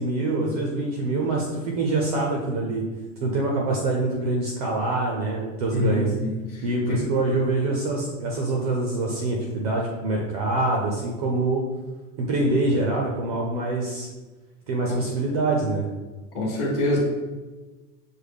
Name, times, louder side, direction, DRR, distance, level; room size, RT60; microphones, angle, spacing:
voice 1, 0.0-2.8 3.2-6.1 6.6-11.6 12.2-14.1 14.7-15.9, right 2 dB, 30° right, -1 dB, 0.4 m, -25 dB
voice 2, 5.7-6.6 6.9-7.0 14.9-15.0 16.3-17.0, left 1 dB, 25° left, -3 dB, 0.9 m, -25 dB
6.2 x 2.1 x 3.4 m, 1.2 s
supercardioid pair, 170°, 38 cm